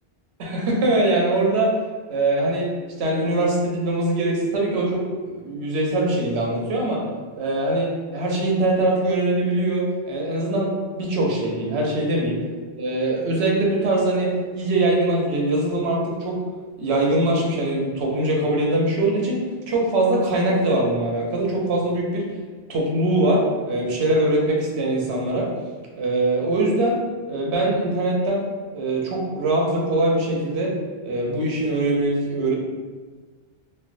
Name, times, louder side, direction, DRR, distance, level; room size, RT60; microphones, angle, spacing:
voice 1, 0.4-1.7 2.1-2.7 3.0-7.0 7.3-10.7 11.0-12.4 12.7-16.4 16.8-19.4 19.7-22.3 22.7-25.5 25.9-27.0 27.3-28.4 28.7-30.7 31.0-32.5, right 2 dB, 90° right, -1 dB, 0.9 m, -22 dB
3.2 x 2.1 x 2.5 m, 1.4 s
omnidirectional pair, 1.1 m